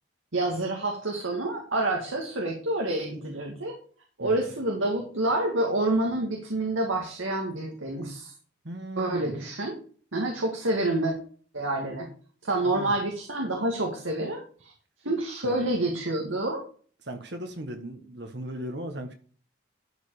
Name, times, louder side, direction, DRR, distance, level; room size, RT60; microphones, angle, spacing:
voice 1, 0.3-3.8 4.2-8.3 9.0-9.8 10.1-11.1 11.5-12.1 12.4-14.7 15.0-16.6, right 2 dB, 90° right, 1 dB, 2.2 m, -28 dB
voice 2, 8.6-9.4 12.6-12.9 15.4-15.7 17.1-19.1, right 1 dB, 60° right, 5 dB, 1.4 m, -37 dB
12.5 x 5.1 x 4.9 m, 0.43 s
head